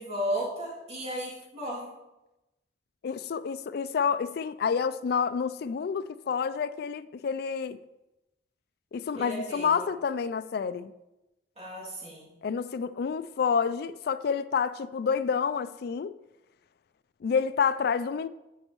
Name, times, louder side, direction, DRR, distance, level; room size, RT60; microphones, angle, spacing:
voice 1, 0.0-1.9 9.2-9.8 11.6-12.3, equal, 35° right, 2.6 m, -34 dB
voice 2, 3.0-7.8 8.9-10.9 12.4-16.1 17.2-18.3, left 6 dB, 60° left, 0.3 m, -29 dB
14.5 x 5.4 x 3.0 m
head